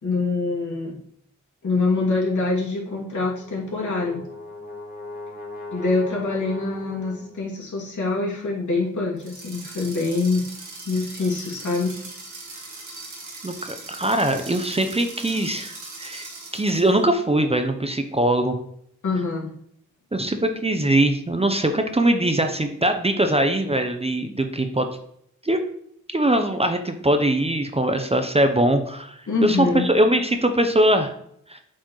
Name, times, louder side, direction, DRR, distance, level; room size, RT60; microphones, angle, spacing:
voice 1, 0.0-1.0 1.6-4.2 5.7-10.4 10.9-11.9 19.0-19.5 29.3-29.9, left 3 dB, 65° left, -5 dB, 2.6 m, -25 dB
Brass instrument, 3.2-7.5, left 2 dB, 30° left, 2.0 m, -39 dB
sound 1, 9.2-17.0, right 3 dB, 65° right, 2.0 m, -40 dB
voice 2, 13.4-16.3 16.5-18.6 20.1-24.9 25.4-25.6 26.1-31.1 31.5-31.6, right 1 dB, 20° right, 6 dB, 0.7 m, -21 dB
8.1 x 4.3 x 3.1 m, 0.69 s
cardioid pair, 60°, 31 cm